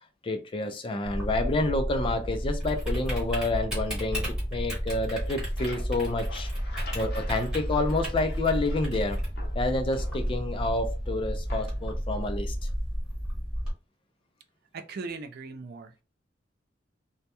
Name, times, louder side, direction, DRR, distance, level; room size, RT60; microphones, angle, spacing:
voice 1, 0.2-6.5 6.9-9.2 9.5-12.6, left 2 dB, 30° left, 0.3 m, -29 dB
Typing, 1.0-13.7, equal, 5° right, 1.1 m, -31 dB
sound 1, 5.2-9.0 9.4-10.7 11.5-12.0, left 3 dB, 60° left, 0.7 m, -47 dB
voice 2, 14.7-16.0, right 4 dB, 55° right, 0.4 m, -39 dB
2.2 x 2.1 x 2.8 m
head